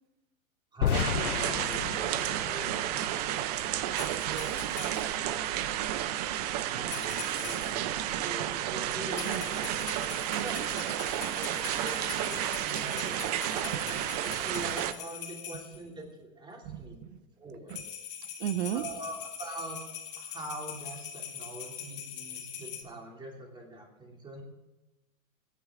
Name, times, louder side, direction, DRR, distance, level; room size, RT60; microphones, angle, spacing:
voice 1, 0.7-3.1 6.7-9.7 10.3-10.7 11.2-11.5 11.8-14.0 14.2-17.0 17.4-17.8 18.7-19.8 20.2-24.4, right 2 dB, 10° right, 0 dB, 2.8 m, -43 dB
sound 1, 0.8-3.8, left 11 dB, 85° left, 0.7 m, -33 dB
sound 2, 0.9-14.9, right 12 dB, 30° right, 0.5 m, -32 dB
voice 2, 3.6-5.3 8.4-8.5 9.2-9.5 10.3-11.3 13.7-13.8 15.5-15.6 16.6-17.2 17.7-17.8 18.4-18.9, right 11 dB, 50° right, 13 dB, 1.0 m, -38 dB
sound 3, 3.9-5.2 6.8-7.9 9.1-15.8 17.7-22.8, left 8 dB, 25° left, 2.3 m, -42 dB
22.5 x 9.9 x 3.7 m, 1.0 s
hypercardioid pair, 135°, 43 cm